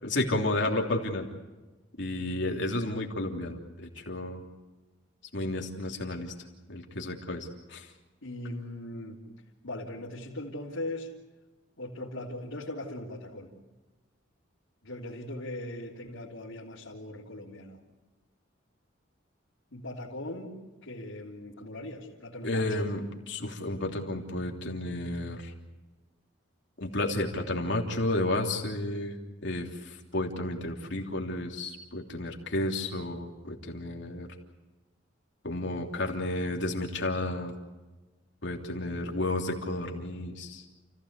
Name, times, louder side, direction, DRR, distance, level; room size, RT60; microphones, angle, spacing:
voice 1, 0.0-1.3 2.0-4.4 5.3-6.3 6.7-7.9 22.4-25.5 26.8-34.3 35.4-37.5 38.4-40.6, left 1 dB, 60° left, 1 dB, 3.2 m, -32 dB
voice 2, 8.2-9.2 9.6-11.1 11.8-13.5 14.8-17.8 19.7-20.5 20.8-22.9, left 1 dB, 85° left, -6 dB, 3.5 m, -39 dB
30.0 x 16.0 x 8.3 m, 1.2 s
head